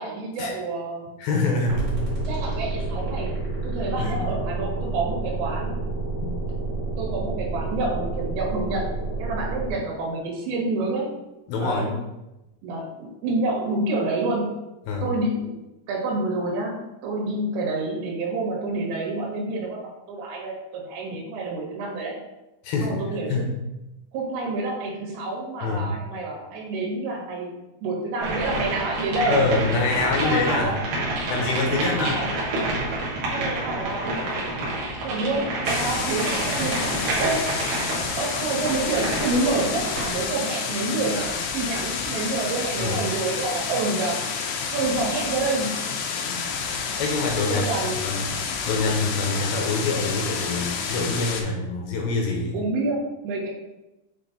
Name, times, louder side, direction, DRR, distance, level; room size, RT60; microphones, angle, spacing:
voice 1, 0.0-1.1 2.3-3.4 3.6-5.8 7.0-8.9 9.2-11.1 11.6-12.0 12.6-14.5 15.0-15.5 15.9-22.2 22.8-23.5 24.1-29.4 30.1-30.8 31.7-32.3 33.3-34.3 34.6-37.4 38.2-44.2 44.7-45.8 47.5-48.0 52.5-53.5, right 2 dB, 80° right, -3 dB, 3.8 m, -28 dB
voice 2, 1.2-1.9 4.0-4.3 11.5-11.9 14.9-15.1 22.6-23.5 25.6-25.9 29.2-30.7 31.3-32.3 36.6-36.7 42.8-43.0 46.2-46.4 47.0-47.7 48.0-48.3 48.6-52.5, left 3 dB, 75° left, 0 dB, 2.4 m, -25 dB
sound 1, 1.7-9.7, right 2 dB, 40° right, 0.9 m, -29 dB
sound 2, 28.2-40.3, right 2 dB, 60° right, 2.4 m, -28 dB
sound 3, 35.7-51.4, left 6 dB, 90° left, 3.3 m, -29 dB
8.1 x 3.9 x 4.0 m, 0.96 s
omnidirectional pair, 5.3 m